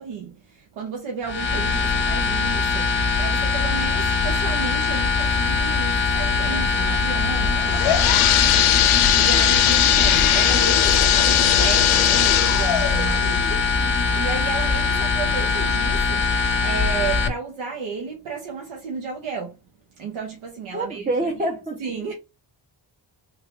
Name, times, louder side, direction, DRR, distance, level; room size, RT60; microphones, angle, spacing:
voice 1, 0.0-8.6 9.1-19.6 20.0-21.1 21.8-22.1, right 5 dB, 90° right, 1.0 m, -33 dB
sound 1, 1.2-17.3, left 4 dB, 25° left, 0.8 m, -22 dB
voice 2, 6.4-7.0 20.7-21.8, right 2 dB, 15° right, 0.7 m, -27 dB
sound 2, 7.4-15.0 15.5-15.6 16.4-16.5 16.9-17.0, left 12 dB, 85° left, 0.6 m, -20 dB
3.2 x 2.3 x 3.7 m
cardioid pair, 70°, 48 cm